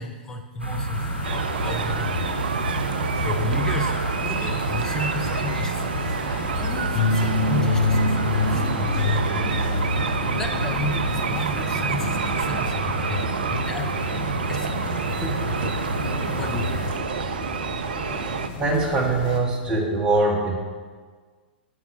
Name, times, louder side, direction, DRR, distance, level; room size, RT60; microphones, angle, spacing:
voice 1, 0.0-17.7, left 2 dB, 10° left, 3 dB, 0.6 m, -34 dB
sound 1, 0.6-16.9, right 1 dB, 90° right, 0.7 m, -29 dB
sound 2, 0.9-19.4, left 3 dB, 35° left, 1.0 m, -30 dB
sound 3, 1.2-18.5, right 7 dB, 60° right, 0.3 m, -29 dB
voice 2, 18.6-20.5, right 2 dB, 15° right, -3 dB, 1.3 m, -22 dB
5.9 x 4.7 x 5.5 m, 1.5 s
figure-of-eight pair, 105°, 6 cm